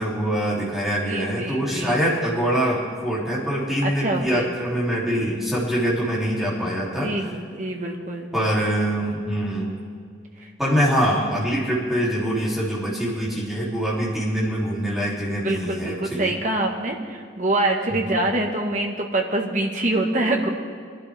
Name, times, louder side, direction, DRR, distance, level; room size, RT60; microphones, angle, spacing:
voice 1, 0.0-7.3 8.3-9.8 10.6-16.3 18.0-18.2, equal, ahead, -8 dB, 3.2 m, -24 dB
voice 2, 1.1-2.0 3.8-4.5 6.8-8.3 15.3-20.5, right 2 dB, 40° right, 2 dB, 1.6 m, -25 dB
22.5 x 11.5 x 3.6 m, 2.1 s
head